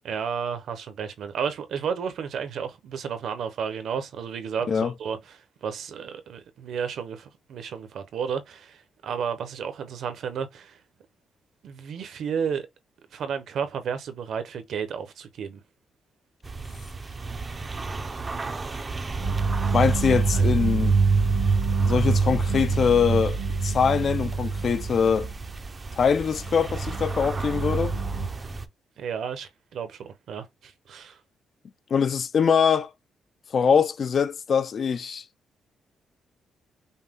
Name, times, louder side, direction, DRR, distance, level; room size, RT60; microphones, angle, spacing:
voice 1, 0.0-10.8 11.6-12.7 13.1-15.6 20.3-20.4 29.0-31.2, right 7 dB, 70° right, 0.8 m, -32 dB
sound 1, 16.4-28.7, right 3 dB, 25° right, 0.5 m, -35 dB
sound 2, 19.2-25.5 26.1-28.3, right 4 dB, 85° right, 1.1 m, -25 dB
voice 2, 19.7-20.9 21.9-25.3 26.0-28.0 31.9-32.9 33.5-35.2, left 6 dB, 45° left, 0.3 m, -23 dB
5.5 x 2.2 x 3.6 m
cardioid pair, 140°, 0 cm